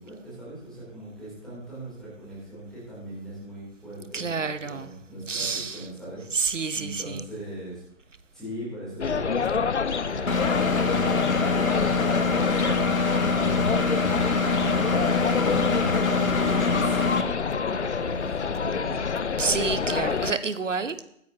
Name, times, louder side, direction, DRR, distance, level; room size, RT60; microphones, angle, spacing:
voice 1, 0.0-6.5 6.7-7.8 8.3-19.1, right 1 dB, ahead, -10 dB, 3.3 m, -40 dB
voice 2, 4.1-4.9 5.3-5.9 6.3-7.3 19.4-21.0, right 5 dB, 65° right, 13 dB, 1.0 m, -28 dB
sound 1, 9.0-20.3, left 5 dB, 55° left, 0.6 m, -28 dB
Engine, 10.3-17.2, left 4 dB, 75° left, 1.3 m, -24 dB
20.5 x 9.5 x 2.9 m, 0.75 s
figure-of-eight pair, 155°, 41 cm